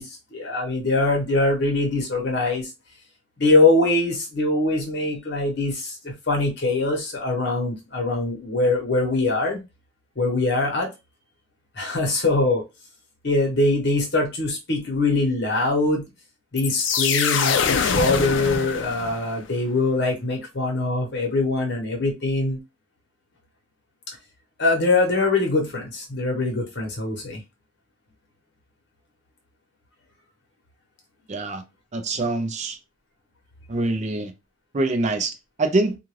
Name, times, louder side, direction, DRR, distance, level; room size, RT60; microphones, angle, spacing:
voice 1, 0.0-2.7 3.4-9.6 10.2-10.9 11.8-12.6 13.2-16.0 16.5-22.6 24.6-27.4, left 2 dB, 60° left, 1.1 m, -23 dB
sound 1, 16.6-19.4, left 6 dB, 75° left, 0.4 m, -24 dB
voice 2, 31.3-31.6 31.9-32.8 33.7-34.3 34.7-36.0, right 2 dB, 40° right, 0.4 m, -24 dB
2.5 x 2.3 x 3.1 m
head